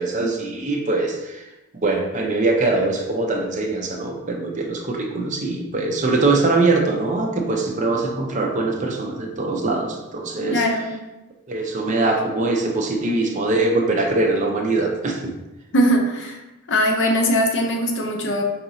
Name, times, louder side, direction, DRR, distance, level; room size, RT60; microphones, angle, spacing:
voice 1, 0.0-1.4 1.8-10.6 11.5-15.3, right 3 dB, 35° right, 2 dB, 0.5 m, -22 dB
voice 2, 10.5-11.0 15.7-16.4 16.7-18.4, equal, 55° left, 2 dB, 0.6 m, -20 dB
4.8 x 2.9 x 2.6 m, 1.0 s
head